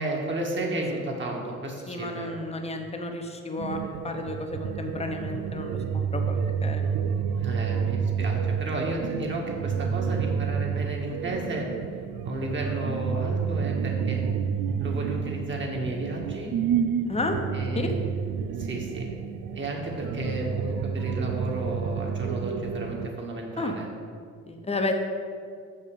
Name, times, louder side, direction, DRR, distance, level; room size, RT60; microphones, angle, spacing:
voice 1, 0.0-2.4 7.4-11.7 12.2-14.2 14.8-16.5 17.5-17.9 18.6-19.1 19.5-23.9, right 1 dB, 40° right, -1 dB, 1.9 m, -33 dB
voice 2, 1.9-6.9 17.1-17.4 17.7-17.9 23.6-23.8 24.4-24.9, left 2 dB, 20° left, 4 dB, 1.0 m, -32 dB
sound 1, 3.6-23.1, right 7 dB, 85° right, 0.5 m, -29 dB
6.6 x 5.6 x 6.9 m, 2.2 s
cardioid pair, 90°, 30 cm